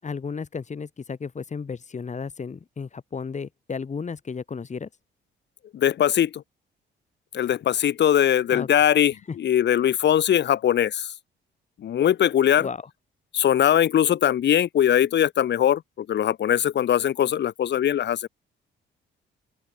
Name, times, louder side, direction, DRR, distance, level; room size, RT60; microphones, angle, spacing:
voice 1, 0.0-4.9 8.5-8.7 9.3-9.4 12.6-12.9, left 5 dB, 35° left, 5.7 m, -33 dB
voice 2, 5.7-6.4 7.3-11.1 11.8-12.7 13.3-18.3, left 10 dB, 60° left, 1.7 m, -21 dB
open air
cardioid pair, 90°, 20 cm